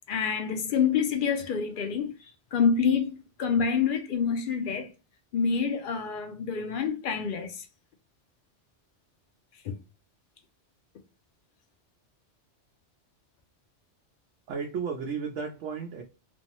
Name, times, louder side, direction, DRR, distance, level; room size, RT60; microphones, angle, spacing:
voice 1, 0.1-2.1 2.5-4.9 5.3-7.6 9.6-9.7, left 6 dB, 60° left, 0.6 m, -27 dB
voice 2, 14.5-16.0, right 6 dB, 85° right, 0.9 m, -33 dB
3.3 x 2.0 x 2.8 m
omnidirectional pair, 1.2 m